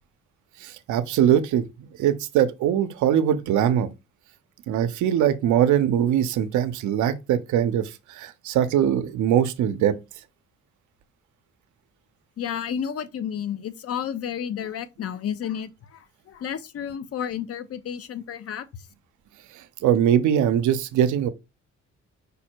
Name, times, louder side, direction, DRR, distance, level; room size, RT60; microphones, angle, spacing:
voice 1, 0.6-1.6 2.0-3.9 4.7-9.9 19.8-21.3, right 10 dB, 75° right, 0.6 m, -21 dB
voice 2, 12.4-18.7, left 8 dB, 50° left, 0.6 m, -31 dB
5.2 x 2.1 x 4.4 m
cardioid pair, 90°, 30 cm